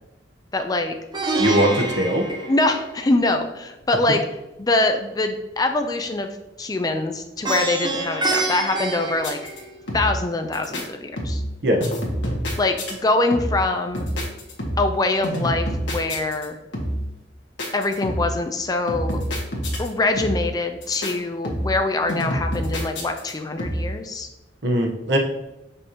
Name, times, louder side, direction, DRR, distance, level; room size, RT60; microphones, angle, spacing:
voice 1, 0.5-1.0 2.5-4.2 4.6-6.3 6.6-9.4 9.9-11.4 12.6-14.1 14.8-16.6 17.7-19.2 19.8-24.3, left 2 dB, 20° left, 6 dB, 0.4 m, -23 dB
Plucked string instrument, 1.1-3.3 7.4-10.0, right 2 dB, 25° right, 0.6 m, -27 dB
voice 2, 1.4-2.2 11.6-11.8 24.6-25.2, right 1 dB, 65° right, 1 dB, 1.0 m, -20 dB
sound 1, 9.2-9.6 9.9-10.3 10.5-10.8 11.2-11.5 11.8-12.9 13.3-13.7 13.9-15.0 15.2-16.5 16.7-17.1 17.6-18.4 18.9-19.9 20.2-20.5 20.8-21.1 21.4-21.8 22.1-23.3 23.6-24.0, equal, 75° left, 1.4 m, -27 dB
6.4 x 5.3 x 2.9 m, 0.96 s
head